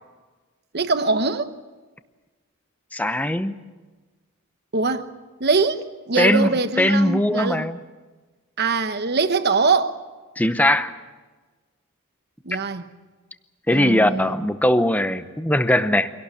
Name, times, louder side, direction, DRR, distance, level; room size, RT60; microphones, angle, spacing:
voice 1, 0.7-1.5 4.7-5.1 5.4-7.7 8.6-10.0 12.4-12.9 13.7-14.4, right 4 dB, 50° right, 1.1 m, -22 dB
voice 2, 2.9-3.6 6.1-6.5 6.8-7.8 10.4-10.9 13.7-16.1, left 1 dB, 5° left, 0.8 m, -20 dB
25.0 x 18.0 x 8.5 m
head